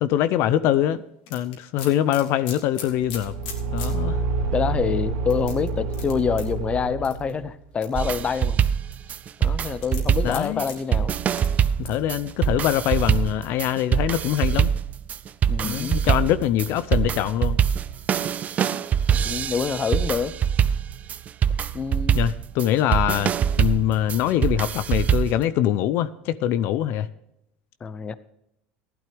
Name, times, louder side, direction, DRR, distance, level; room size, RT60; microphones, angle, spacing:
voice 1, 0.0-1.0 1.3-3.3 3.7-4.2 10.2-10.7 11.8-14.7 15.6-17.6 22.1-23.3 23.6-27.1, left 12 dB, 60° left, 14 dB, 0.6 m, -23 dB
sound 1, 1.3-3.9 4.4-4.5 5.3-6.5 7.0-7.3 7.8-8.5 9.8-10.7 11.3-11.5 11.8-12.0, left 7 dB, 80° left, 3.3 m, -38 dB
Car / Engine, 3.0-7.5, right 3 dB, 85° right, 2.3 m, -28 dB
voice 2, 4.5-8.6 9.4-11.1 15.5-16.0 19.1-20.3 21.7-22.2 27.8-28.1, left 6 dB, 25° left, 16 dB, 0.8 m, -26 dB
sound 2, 7.9-25.4, right 8 dB, 35° right, 0.5 m, -24 dB
15.5 x 12.0 x 3.4 m, 0.81 s
supercardioid pair, 120°, 5 cm